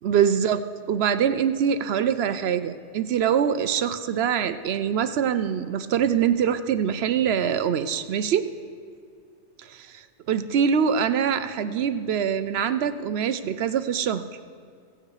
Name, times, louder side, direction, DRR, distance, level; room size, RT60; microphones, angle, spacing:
voice 1, 0.0-0.6 0.9-8.4 9.6-14.2, right 8 dB, 65° right, 12 dB, 0.8 m, -24 dB
16.5 x 8.8 x 4.9 m, 2.2 s
omnidirectional pair, 1.2 m